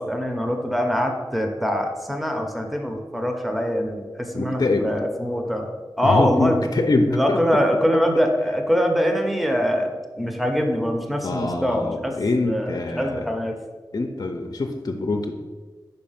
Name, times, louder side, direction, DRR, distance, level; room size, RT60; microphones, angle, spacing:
voice 1, 0.0-5.7 6.0-6.7 7.1-12.1 12.4-13.6, equal, ahead, 3 dB, 0.8 m, -23 dB
voice 2, 4.3-4.9 6.0-7.4 11.2-13.2 13.9-15.3, left 2 dB, 55° left, 4 dB, 0.5 m, -24 dB
5.4 x 4.3 x 5.7 m, 1.4 s
wide cardioid pair, 75°, 8 cm